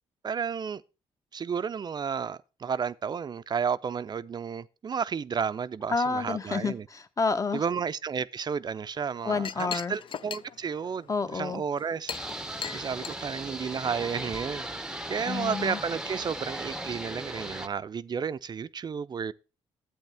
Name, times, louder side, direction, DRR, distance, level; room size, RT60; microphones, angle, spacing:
voice 1, 0.2-0.8 1.3-6.8 7.5-12.1 12.7-19.3, right 6 dB, 40° right, 0.5 m, -32 dB
voice 2, 5.9-7.6 9.2-9.9 11.1-11.6 15.3-15.8, left 4 dB, 30° left, 1.0 m, -29 dB
Chink clink, 8.9-14.3, left 8 dB, 50° left, 0.4 m, -41 dB
sound 1, 12.1-17.7, right 1 dB, 5° right, 0.7 m, -37 dB
10.5 x 8.3 x 3.4 m
cardioid pair, 80°, 11 cm